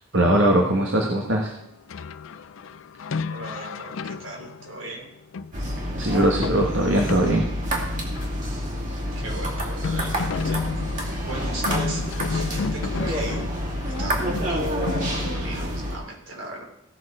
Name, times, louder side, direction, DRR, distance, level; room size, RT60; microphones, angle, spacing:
voice 1, 0.1-1.5 6.0-7.5, right 1 dB, 70° right, 0 dB, 1.4 m, -20 dB
sound 1, 1.9-8.6 8.8-8.9 9.2-9.3 9.6-15.8, left 5 dB, 85° left, 0.4 m, -33 dB
voice 2, 3.3-5.1 8.9-12.0 12.3-13.5 13.9-16.6, right 1 dB, 85° right, 0 dB, 3.4 m, -37 dB
sound 2, 5.5-16.0, equal, 40° right, 2.4 m, -28 dB
16.5 x 6.6 x 4.8 m, 0.80 s
head